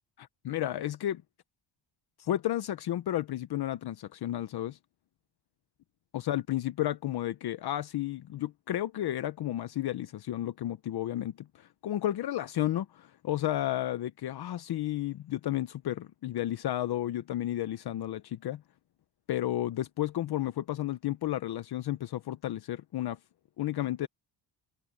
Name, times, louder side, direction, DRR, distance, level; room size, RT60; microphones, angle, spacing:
voice 1, 0.2-1.2 2.2-4.8 6.1-18.6 19.3-23.2 23.6-24.1, left 13 dB, 65° left, 0.8 m, -32 dB
wide cardioid pair, 170°, 42 cm